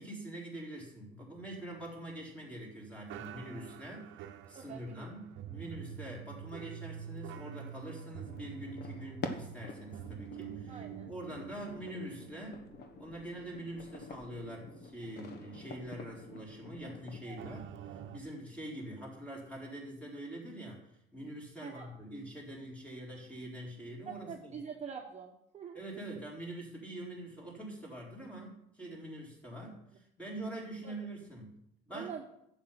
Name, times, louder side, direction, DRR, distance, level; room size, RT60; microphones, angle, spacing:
voice 1, 0.0-12.7 13.0-24.5 25.7-32.1, right 1 dB, 5° left, -3 dB, 4.1 m, -44 dB
sound 1, 1.3-2.7 3.1-13.5 13.8-14.0 14.6-14.7 17.4-18.2, right 9 dB, 65° right, 0.9 m, -47 dB
voice 2, 4.5-5.1 10.7-11.1 16.8-16.9 17.2-17.4 21.6-21.9 24.3-25.8 30.8-30.9 31.9-32.2, right 7 dB, 35° right, 1 dB, 1.1 m, -45 dB
sound 2, 8.3-17.2, left 3 dB, 50° left, 1.3 m, -47 dB
11.5 x 8.1 x 5.7 m, 0.77 s
cardioid pair, 120°, 21 cm